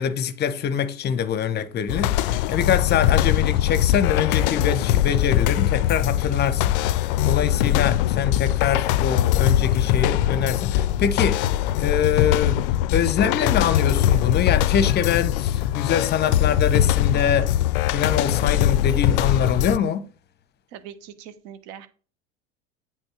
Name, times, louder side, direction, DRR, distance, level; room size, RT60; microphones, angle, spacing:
voice 1, 0.0-12.6 12.9-17.5 17.9-20.0, left 8 dB, 30° left, 0.8 m, -24 dB
sound 1, 1.9-19.8, left 12 dB, 50° left, 0.5 m, -21 dB
voice 2, 20.7-21.9, right 9 dB, 50° right, 1.1 m, -41 dB
8.0 x 3.7 x 6.2 m
figure-of-eight pair, 75°, 35 cm